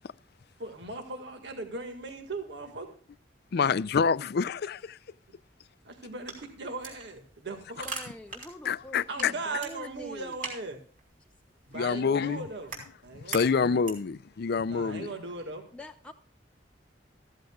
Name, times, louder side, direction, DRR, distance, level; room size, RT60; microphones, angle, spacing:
voice 1, 0.6-2.9 5.8-7.9 9.1-10.8 11.7-12.7 13.0-13.8 14.6-15.7, right 3 dB, 70° right, 1.8 m, -38 dB
voice 2, 3.5-5.0 8.6-9.3 11.7-12.4 13.3-15.1, left 5 dB, 60° left, 0.4 m, -27 dB
sound 1, 6.0-14.2, right 3 dB, 50° right, 3.6 m, -44 dB
voice 3, 7.8-10.4 15.7-16.1, left 1 dB, 5° left, 0.5 m, -45 dB
14.5 x 14.5 x 2.3 m
head